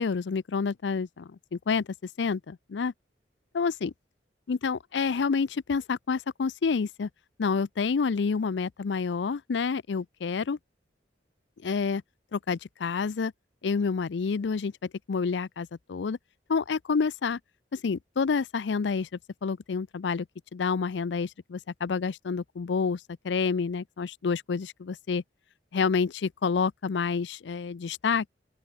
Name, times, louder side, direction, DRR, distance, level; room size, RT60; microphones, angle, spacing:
voice 1, 0.0-1.9 2.2-2.9 3.5-3.9 4.5-7.1 7.4-10.6 11.6-12.0 12.3-13.3 13.6-16.2 16.5-17.4 17.7-19.1 19.4-20.3 20.5-25.2 25.7-28.3, left 5 dB, 75° left, 0.5 m, -28 dB
open air
head